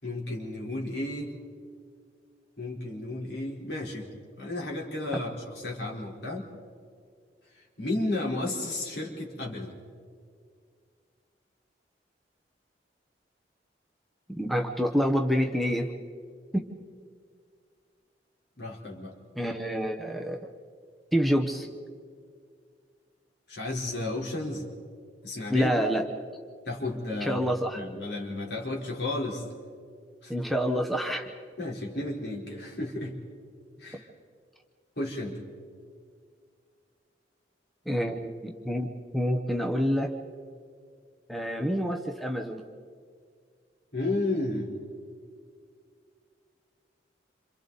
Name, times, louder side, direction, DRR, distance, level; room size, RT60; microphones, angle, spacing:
voice 1, 0.0-1.3 2.6-4.1 4.4-6.5 7.8-9.7 18.6-19.1 23.5-24.7 25.2-25.7 26.7-27.5 27.7-29.4 30.2-30.3 31.6-33.2 33.8-34.1 35.0-35.4 43.9-44.7, left 2 dB, 65° left, -1 dB, 4.1 m, -33 dB
voice 2, 14.3-15.9 16.5-16.7 19.3-20.5 21.1-21.7 25.5-26.1 27.2-27.8 30.3-31.3 37.9-38.9 39.1-40.1 41.3-42.6, equal, ahead, 3 dB, 1.0 m, -27 dB
27.5 x 27.5 x 4.1 m, 2.1 s
head